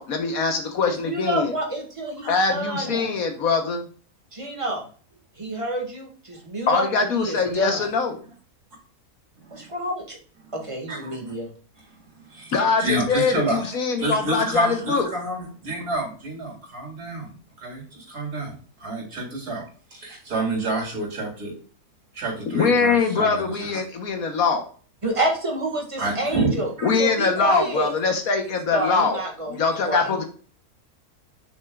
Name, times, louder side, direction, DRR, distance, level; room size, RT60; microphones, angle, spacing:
voice 1, 0.0-1.5 2.3-3.9 6.7-8.2 12.5-15.1 22.5-24.6 26.8-29.2 29.5-30.3, left 4 dB, 70° left, 5 dB, 1.5 m, -23 dB
voice 2, 0.9-3.1 4.3-4.9 5.4-7.9 9.5-10.2 10.5-11.5 25.0-26.7 27.0-27.9 28.7-29.6 29.8-30.3, right 1 dB, 20° right, 0 dB, 1.8 m, -28 dB
voice 3, 12.2-12.5 12.8-19.6 19.9-21.5 22.1-23.7 26.0-26.5 26.8-26.9, right 2 dB, 85° right, -3 dB, 3.7 m, -29 dB
6.4 x 6.2 x 2.4 m, 0.40 s
omnidirectional pair, 1.6 m